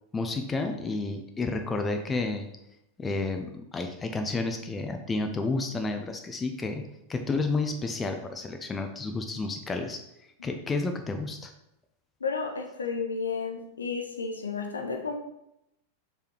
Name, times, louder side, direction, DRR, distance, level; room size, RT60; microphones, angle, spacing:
voice 1, 0.1-2.5 3.0-6.8 7.1-10.0 10.4-11.5, left 3 dB, 15° left, 5 dB, 0.7 m, -31 dB
voice 2, 12.2-15.1, left 5 dB, 75° left, 4 dB, 0.9 m, -32 dB
6.7 x 3.5 x 4.5 m, 0.83 s
figure-of-eight pair, 90°, 0 cm